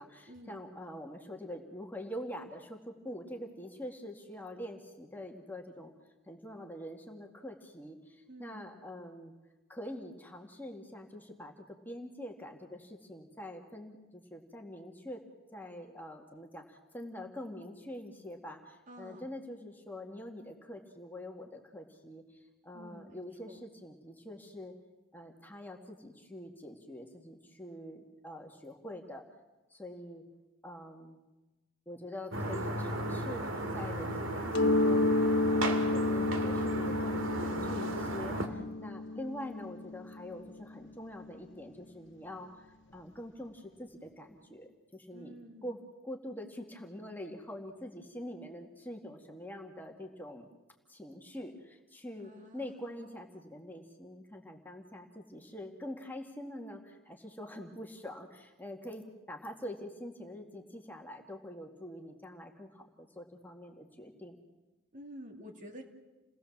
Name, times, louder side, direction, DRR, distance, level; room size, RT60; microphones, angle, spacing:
voice 1, 0.0-5.9 6.2-9.3 9.7-15.2 15.5-24.7 25.1-29.2 29.7-30.2 30.6-31.2 31.9-35.1 35.4-42.7 42.9-45.4 45.6-50.5 50.9-64.4, left 1 dB, 10° left, 2 dB, 2.0 m, -45 dB
voice 2, 8.3-8.7 18.9-19.3 22.7-23.2 23.5-23.6 45.1-45.7 52.2-52.7 64.9-65.8, equal, 40° right, 3 dB, 2.9 m, -49 dB
sound 1, 32.3-38.5, right 1 dB, 75° right, 2.5 m, -35 dB
Mallet percussion, 34.5-40.1, left 2 dB, 60° left, 0.9 m, -30 dB
29.0 x 18.5 x 7.3 m, 1.1 s
head